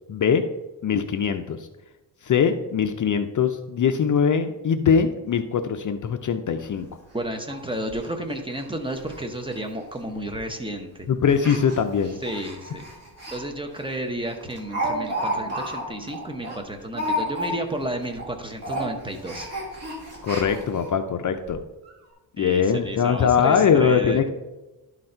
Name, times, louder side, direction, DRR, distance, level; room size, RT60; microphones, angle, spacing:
voice 1, 0.1-0.4 0.8-1.7 2.2-6.9 11.1-12.2 20.2-21.6 22.4-24.3, left 7 dB, 45° left, 8 dB, 0.5 m, -22 dB
Speech, 6.6-6.7 7.0-7.1 7.5-7.6 7.9-8.1 8.5-8.7 8.9-9.2 9.5-9.6 10.3-10.6 11.3-13.4 13.8-13.9 14.2-17.8 18.1-18.3 18.6-20.9 21.5-21.6 21.8-21.9, equal, 35° right, 2.3 m, -31 dB
voice 2, 7.1-11.1 12.2-12.8 13.3-19.5 22.4-24.2, right 1 dB, 10° right, 3 dB, 0.8 m, -32 dB
11.5 x 4.0 x 4.4 m, 1.1 s
wide cardioid pair, 130°, 43 cm